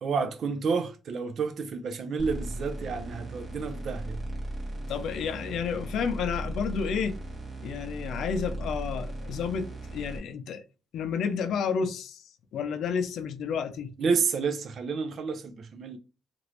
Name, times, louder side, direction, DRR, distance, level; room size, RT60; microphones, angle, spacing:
voice 1, 0.0-4.2 14.0-16.0, right 5 dB, 60° right, 0.6 m, -30 dB
sound 1, 2.2-10.2, right 1 dB, 30° right, 1.4 m, -37 dB
voice 2, 4.9-7.2 7.6-10.6 10.9-13.9, left 6 dB, 75° left, 0.5 m, -31 dB
3.0 x 2.5 x 2.8 m
cardioid pair, 90°, 0 cm